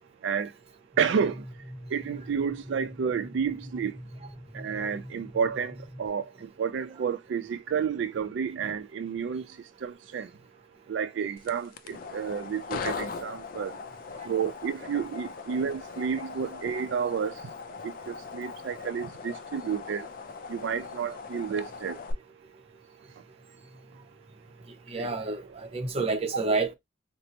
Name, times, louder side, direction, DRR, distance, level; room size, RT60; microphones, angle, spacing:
sound 1, 0.9-6.1, equal, 5° right, 1.0 m, -44 dB
voice 1, 1.0-1.4 1.9-3.9 4.5-6.2 6.6-9.4 9.8-10.3 10.9-13.7 14.3-17.3 17.8-20.1 20.5-22.0 25.0-25.1, right 6 dB, 85° right, 0.3 m, -30 dB
sound 2, 11.4-22.1, left 5 dB, 50° left, 0.4 m, -40 dB
voice 2, 24.9-26.7, right 3 dB, 35° right, 0.6 m, -29 dB
4.2 x 2.0 x 2.7 m
head